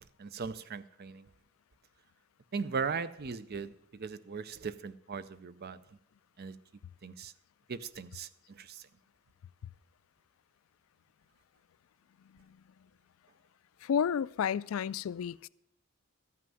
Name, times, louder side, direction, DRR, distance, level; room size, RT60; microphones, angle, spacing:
voice 1, 0.2-1.3 2.5-5.8 6.4-6.6 7.0-7.3 7.7-8.8, right 5 dB, 45° right, 0.5 m, -38 dB
voice 2, 13.8-15.5, left 7 dB, 65° left, 0.3 m, -31 dB
13.5 x 5.8 x 7.6 m
head